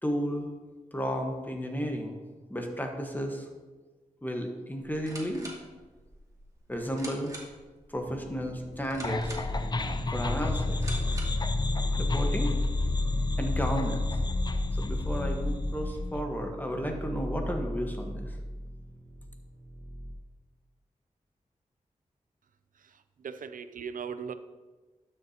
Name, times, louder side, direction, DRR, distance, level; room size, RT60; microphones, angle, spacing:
voice 1, 0.0-0.5 0.9-2.2 2.5-3.5 4.2-5.5 6.7-7.3 7.9-9.3 10.1-10.8 12.0-12.5 13.4-14.1 14.8-18.4, equal, 15° left, 3 dB, 1.3 m, -33 dB
sound 1, 4.8-11.5, right 1 dB, 25° right, 2.2 m, -46 dB
sound 2, 8.1-20.1, equal, 55° right, 1.4 m, -39 dB
sound 3, 9.0-16.2, left 2 dB, 30° left, 0.5 m, -29 dB
voice 2, 22.8-24.3, right 6 dB, 80° right, 11 dB, 0.5 m, -39 dB
12.0 x 6.7 x 2.9 m, 1.3 s
cardioid pair, 65°, 14 cm